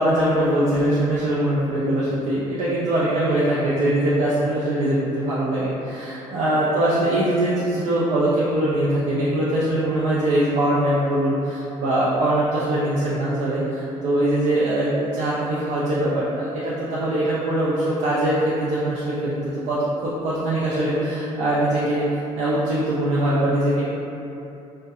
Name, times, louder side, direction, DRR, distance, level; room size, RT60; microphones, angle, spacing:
voice 1, 0.0-14.9 15.1-19.8 20.0-22.0 22.4-23.8, right 1 dB, 70° right, -8 dB, 0.4 m, -22 dB
2.3 x 2.1 x 2.7 m, 2.8 s
cardioid pair, 160°, 13 cm